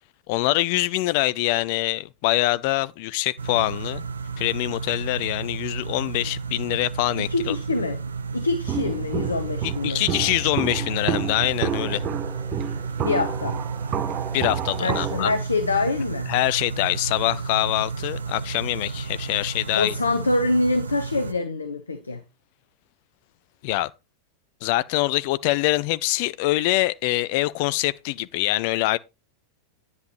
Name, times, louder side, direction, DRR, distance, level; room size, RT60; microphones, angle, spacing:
voice 1, 0.3-4.0 4.4-7.6 9.6-12.0 14.3-15.3 16.3-20.0 23.6-23.9 24.6-29.0, left 18 dB, 45° left, 0.6 m, -24 dB
sound 1, 3.4-21.3, right 5 dB, 75° right, 0.8 m, -32 dB
voice 2, 7.1-10.1 13.0-13.6 14.8-16.3 19.8-22.2, left 3 dB, 75° left, 1.1 m, -25 dB
Walk footsteps, 8.7-15.4, right 8 dB, 35° right, 1.0 m, -30 dB
10.5 x 9.7 x 3.2 m
figure-of-eight pair, 90°, 0 cm